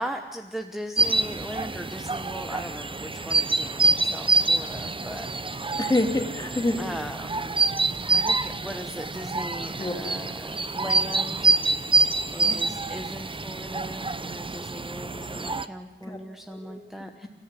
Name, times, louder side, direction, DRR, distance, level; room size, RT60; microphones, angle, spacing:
voice 1, 0.0-5.8 6.8-7.5 8.1-11.6 12.3-17.3, equal, ahead, 5 dB, 1.1 m, -38 dB
sound 1, 1.0-15.7, right 3 dB, 25° right, 0.7 m, -26 dB
voice 2, 5.8-7.0 9.8-9.9 12.4-12.6 16.0-16.2 16.5-16.7 17.2-17.3, left 2 dB, 20° left, 3 dB, 2.9 m, -27 dB
30.0 x 14.0 x 9.8 m, 1.4 s
wide cardioid pair, 115°, 20 cm